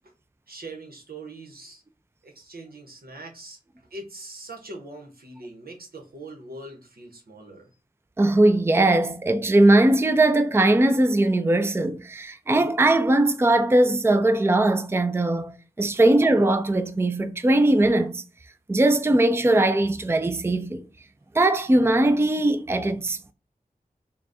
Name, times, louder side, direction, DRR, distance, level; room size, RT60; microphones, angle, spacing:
voice 1, 0.5-1.8 2.2-3.6 3.9-7.7, right 2 dB, 85° right, 1.1 m, -42 dB
voice 2, 8.2-18.2 18.7-20.8 21.3-23.3, right 1 dB, 15° right, 0.4 m, -20 dB
4.0 x 2.3 x 3.5 m
wide cardioid pair, 55°, 15 cm